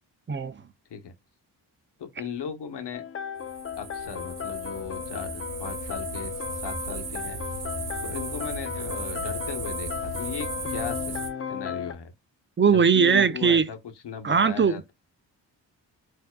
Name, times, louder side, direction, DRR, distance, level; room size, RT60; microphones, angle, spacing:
voice 1, 2.0-3.0 3.8-6.3 6.6-7.4 8.0-11.2 11.5-12.1 12.7-13.8 14.0-14.9, left 7 dB, 70° left, 1.1 m, -37 dB
sound 1, 2.9-11.9, left 8 dB, 30° left, 0.5 m, -35 dB
sound 2, 3.4-11.3, right 4 dB, 55° right, 1.0 m, -36 dB
voice 2, 12.6-13.7 14.2-14.9, right 6 dB, 25° right, 0.5 m, -20 dB
4.3 x 2.7 x 2.2 m
cardioid pair, 60°, 43 cm